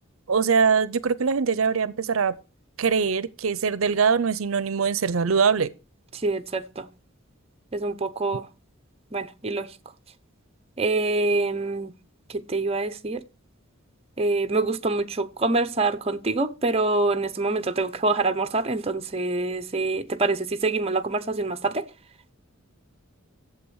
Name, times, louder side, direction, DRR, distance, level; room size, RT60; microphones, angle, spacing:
voice 1, 0.3-2.4 2.8-5.7, right 5 dB, 75° right, 0.6 m, -22 dB
voice 2, 6.2-6.8 7.7-8.5 9.1-9.7 10.8-11.9 12.5-13.2 14.2-21.8, right 3 dB, 30° right, 0.8 m, -25 dB
10.5 x 7.6 x 6.2 m
head